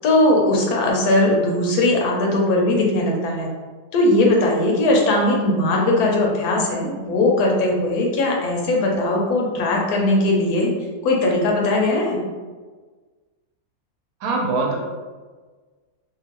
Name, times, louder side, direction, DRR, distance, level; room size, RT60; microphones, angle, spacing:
voice 1, 0.0-3.5 3.9-10.7 11.0-12.2, left 2 dB, 80° left, -1 dB, 1.2 m, -19 dB
voice 2, 14.2-14.8, right 3 dB, 70° right, 0 dB, 1.0 m, -22 dB
2.9 x 2.3 x 2.9 m, 1.4 s
omnidirectional pair, 1.6 m